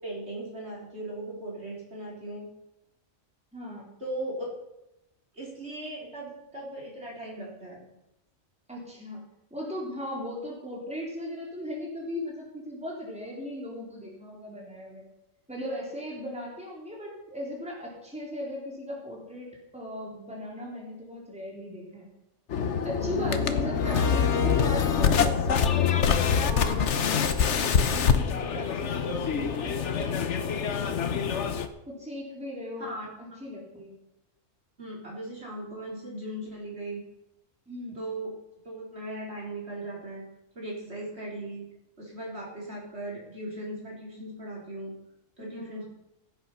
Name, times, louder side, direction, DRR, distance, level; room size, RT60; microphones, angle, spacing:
voice 1, 0.0-2.5 4.0-4.5 5.3-7.9 32.9-33.1 33.3-33.4 34.8-37.0 37.9-38.3 38.6-40.3 40.5-41.7 42.0-44.9 45.4-45.9, right 1 dB, 55° right, -4 dB, 4.5 m, -38 dB
voice 2, 3.5-3.9 8.7-9.2 9.5-15.0 15.5-22.1 22.8-26.0 26.4-31.5 31.9-32.9 33.2-33.9 37.7-38.0 45.4-45.9, left 1 dB, 5° right, -3 dB, 3.7 m, -38 dB
sound 1, 22.5-31.7, left 6 dB, 65° left, 1.2 m, -25 dB
16.0 x 8.9 x 5.6 m, 0.89 s
omnidirectional pair, 1.3 m